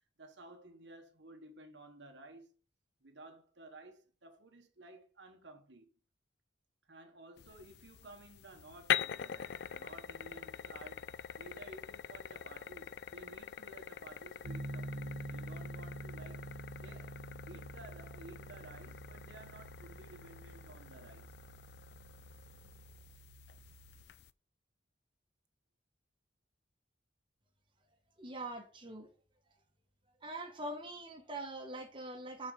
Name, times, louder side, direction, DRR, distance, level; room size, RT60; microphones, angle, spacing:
voice 1, 0.2-2.5 3.0-5.9 6.9-16.5 16.8-17.1 17.5-21.3, right 2 dB, 70° right, 1.3 m, -54 dB
sound 1, 7.4-24.3, left 9 dB, 60° left, 0.3 m, -44 dB
Piano, 14.4-24.1, right 1 dB, 90° right, 1.0 m, -48 dB
voice 2, 28.2-29.1 30.2-32.5, right 2 dB, 25° right, 1.3 m, -43 dB
6.4 x 4.8 x 6.3 m
head